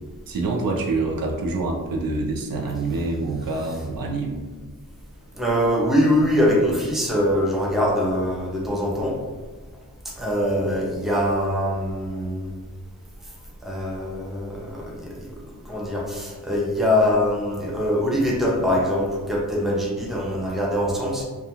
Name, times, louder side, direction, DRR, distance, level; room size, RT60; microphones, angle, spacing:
voice 1, 0.3-4.4, right 3 dB, 85° right, 0 dB, 0.5 m, -26 dB
voice 2, 5.3-9.2 10.2-12.5 13.6-15.2 15.7-21.2, equal, ahead, -3 dB, 0.5 m, -23 dB
2.3 x 2.2 x 2.8 m, 1.3 s
wide cardioid pair, 125°, 34 cm